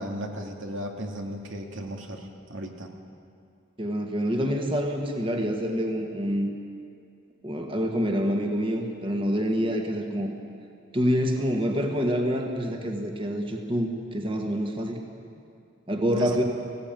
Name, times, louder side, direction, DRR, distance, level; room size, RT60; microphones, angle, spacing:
voice 1, 0.0-2.9 16.1-16.4, equal, 80° right, 2 dB, 2.3 m, -36 dB
voice 2, 3.8-6.5 7.4-10.3 10.9-15.0 15.9-16.4, equal, 25° right, 3 dB, 1.6 m, -26 dB
18.5 x 16.5 x 9.0 m, 2.5 s
head